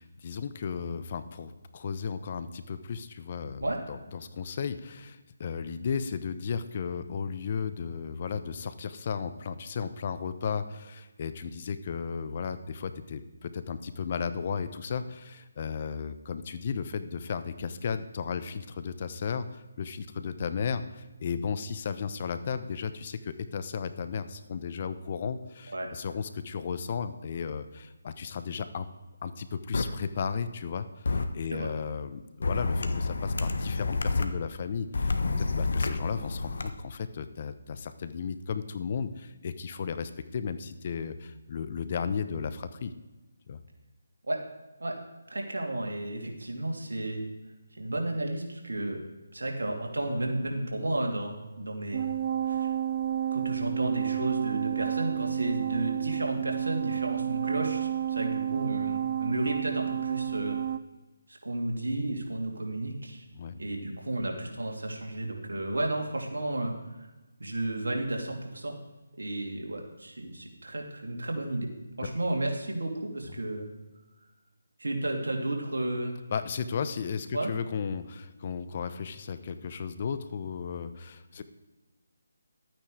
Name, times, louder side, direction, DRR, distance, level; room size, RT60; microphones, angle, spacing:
voice 1, 0.0-28.9 29.2-42.9 43.5-43.6 63.4-63.6 72.0-72.1 76.3-81.4, left 6 dB, 40° left, 11 dB, 0.9 m, -34 dB
sound 1, 29.7-29.8 31.1-31.3 32.4-34.3 34.9-36.7, left 3 dB, 65° left, 1.2 m, -28 dB
voice 2, 45.3-47.2 47.7-49.0 49.3-52.1 52.4-52.7 53.3-60.6 61.3-63.2 63.6-67.1 67.4-68.8 69.2-71.7 72.0-73.7 74.8-76.2 77.3-77.5, right 1 dB, 75° right, 1 dB, 2.8 m, -32 dB
sound 2, 51.9-60.8, right 10 dB, 40° right, 0.5 m, -31 dB
12.5 x 9.0 x 4.9 m, 1.1 s
figure-of-eight pair, 155°, 0 cm